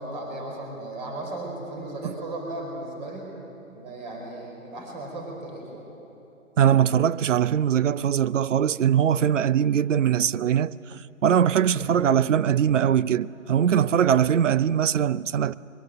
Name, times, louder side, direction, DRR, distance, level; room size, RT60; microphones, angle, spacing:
voice 1, 0.0-3.3 3.7-5.8, right 2 dB, 35° right, 5.1 m, -36 dB
voice 2, 6.6-15.5, right 9 dB, 65° right, 0.7 m, -21 dB
23.5 x 22.0 x 7.9 m
hypercardioid pair, 165°, 40 cm